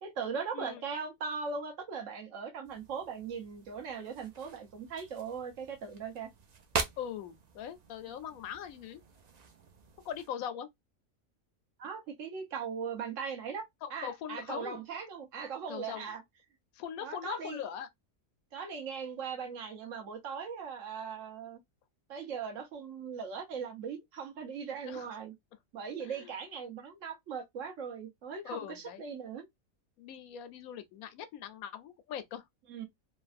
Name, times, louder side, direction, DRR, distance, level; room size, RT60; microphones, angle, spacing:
voice 1, 0.0-6.3 11.8-13.6 13.9-16.2 17.0-17.6 18.5-21.6 22.1-25.3 25.7-29.5 32.7-32.9, right 6 dB, 70° right, 1.1 m, -39 dB
sound 1, 2.6-10.3, right 5 dB, 85° right, 0.3 m, -43 dB
voice 2, 7.0-9.0 10.0-10.7 13.8-14.8 15.7-16.1 16.7-17.9 24.9-25.1 25.9-26.3 28.4-29.0 30.0-32.5, left 9 dB, 90° left, 1.1 m, -41 dB
3.2 x 2.2 x 2.4 m
omnidirectional pair, 1.4 m